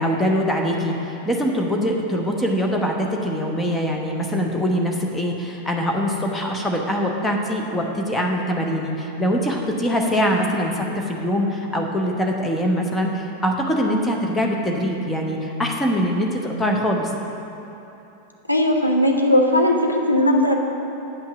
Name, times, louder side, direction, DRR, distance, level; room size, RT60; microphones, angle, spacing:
voice 1, 0.0-17.1, equal, 10° left, 1 dB, 1.0 m, -23 dB
voice 2, 18.5-20.6, left 1 dB, 90° left, 1 dB, 0.8 m, -18 dB
8.8 x 5.8 x 5.9 m, 2.9 s
figure-of-eight pair, 90°, 0 cm